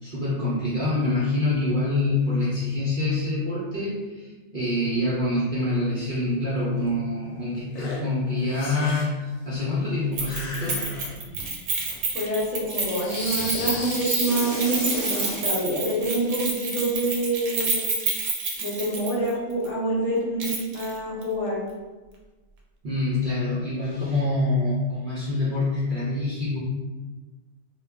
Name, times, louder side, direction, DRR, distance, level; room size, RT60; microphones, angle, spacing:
voice 1, 0.0-10.8 22.8-26.6, left 2 dB, 55° right, -8 dB, 0.5 m, -26 dB
sound 1, 6.8-6.9 7.7-8.0 8.4-9.2 10.2-11.5 11.8-12.0 12.9-15.5, left 2 dB, 90° left, 1.0 m, -35 dB
Keys jangling, 10.2-19.3 19.6-19.7 20.4-20.9 21.2-21.3, right 4 dB, 90° right, 1.0 m, -29 dB
voice 2, 12.1-17.9 18.6-21.6, right 1 dB, 65° left, -4 dB, 1.0 m, -26 dB
2.3 x 2.1 x 3.4 m, 1.3 s
omnidirectional pair, 1.4 m